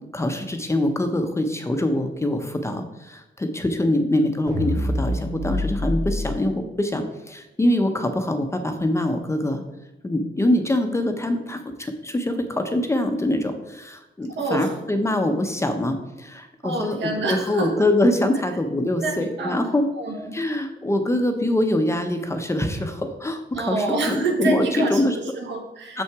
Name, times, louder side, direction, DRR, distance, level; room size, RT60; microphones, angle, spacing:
voice 1, 0.1-9.6 10.0-17.0 17.3-19.9 20.3-25.2 25.9-26.0, left 1 dB, 15° left, 6 dB, 0.6 m, -24 dB
sound 1, 4.5-6.3, left 1 dB, 20° right, 0.9 m, -26 dB
voice 2, 14.3-14.8 16.6-17.7 18.9-19.6 20.0-20.4 23.5-26.0, right 3 dB, 75° right, 3 dB, 1.5 m, -27 dB
6.9 x 5.7 x 4.6 m, 0.96 s
wide cardioid pair, 160°, 19 cm